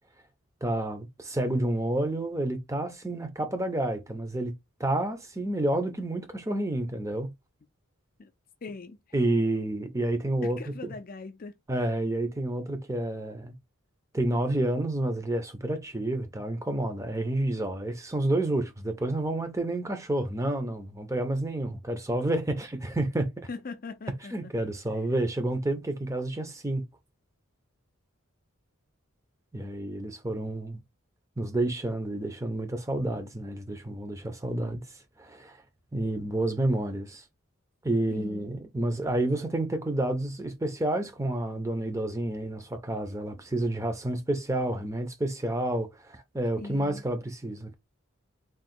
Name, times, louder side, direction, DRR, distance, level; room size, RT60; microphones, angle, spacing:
voice 1, 0.6-4.5 4.8-7.3 9.1-10.6 11.7-13.5 14.1-23.3 24.3-26.8 29.5-30.8 31.4-34.8 35.2-35.6 35.9-37.2 37.8-47.7, right 1 dB, 15° right, 0.6 m, -29 dB
voice 2, 8.6-9.0 10.4-11.6 23.5-24.7 38.1-38.5 46.6-47.0, left 4 dB, 40° left, 0.5 m, -41 dB
3.7 x 2.3 x 4.2 m
head